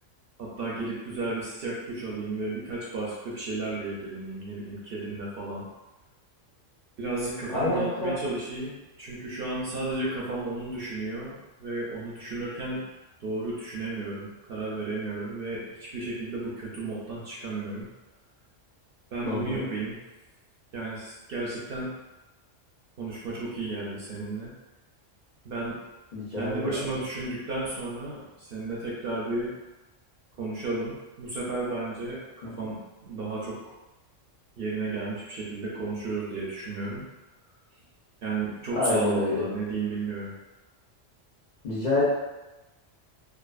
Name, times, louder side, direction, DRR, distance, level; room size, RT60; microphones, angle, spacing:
voice 1, 0.4-5.7 7.0-12.8 13.2-17.9 19.1-20.0 20.7-21.9 23.0-24.5 25.4-25.8 26.4-29.5 30.4-33.6 34.6-37.1 38.2-40.3, right 2 dB, 60° right, -6 dB, 0.7 m, -33 dB
voice 2, 7.5-8.2 19.2-19.7 26.1-26.8 32.4-32.5 38.7-39.5 41.6-42.1, left 2 dB, 50° left, -9 dB, 0.6 m, -27 dB
2.5 x 2.4 x 2.3 m, 1.1 s
omnidirectional pair, 1.3 m